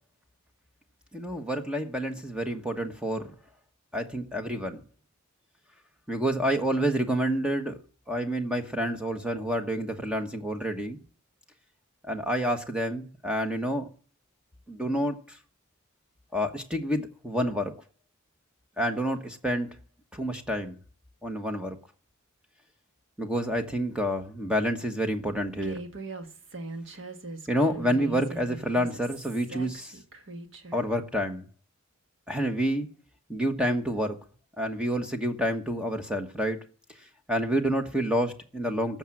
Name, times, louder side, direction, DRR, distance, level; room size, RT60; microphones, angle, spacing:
voice 1, 1.1-3.3 3.9-4.8 6.1-7.8 8.1-11.0 12.0-13.9 14.7-15.4 16.3-17.7 18.8-19.8 20.1-20.8 21.2-21.8 23.2-25.8 27.5-30.0 30.7-31.5 32.3-32.9 33.3-34.2 34.6-36.6 37.3-39.0, equal, 5° right, 1.3 m, -28 dB
Human voice, 25.6-30.8, right 2 dB, 60° right, 1.5 m, -41 dB
13.5 x 7.3 x 7.7 m
head